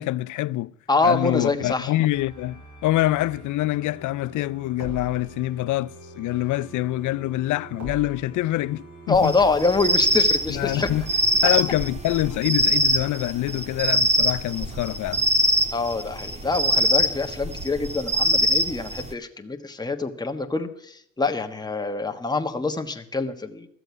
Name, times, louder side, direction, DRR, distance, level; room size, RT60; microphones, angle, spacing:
voice 1, 0.0-0.7 1.0-9.3 10.5-11.1 11.4-15.2, left 16 dB, 80° left, 0.5 m, -25 dB
voice 2, 0.9-1.9 9.1-10.9 15.7-23.7, left 3 dB, 15° left, 1.3 m, -25 dB
sound 1, 2.1-12.4, right 2 dB, 65° right, 7.3 m, -42 dB
sound 2, 9.1-19.1, equal, 20° right, 1.4 m, -23 dB
13.5 x 7.8 x 9.3 m
cardioid pair, 90°, 30 cm